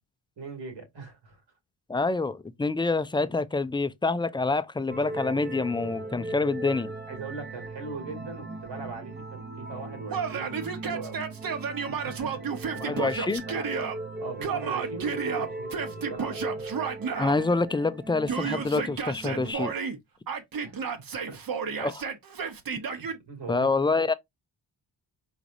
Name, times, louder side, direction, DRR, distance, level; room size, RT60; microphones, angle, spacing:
voice 1, 0.4-1.4 7.1-11.2 11.9-13.1 13.5-13.9 14.2-16.5 20.6-20.8 21.3-21.4 23.0-23.7, right 4 dB, 85° right, 2.5 m, -40 dB
voice 2, 1.9-6.9 12.8-13.4 17.2-19.7 21.8-22.0 23.5-24.1, left 3 dB, 10° left, 0.3 m, -26 dB
sound 1, 4.9-19.5, right 2 dB, 25° right, 0.7 m, -39 dB
Yell, 10.1-14.0 14.4-17.4 18.3-20.0 20.3-23.2, right 6 dB, 55° right, 1.0 m, -32 dB
4.7 x 4.0 x 2.5 m
cardioid pair, 100°, 42 cm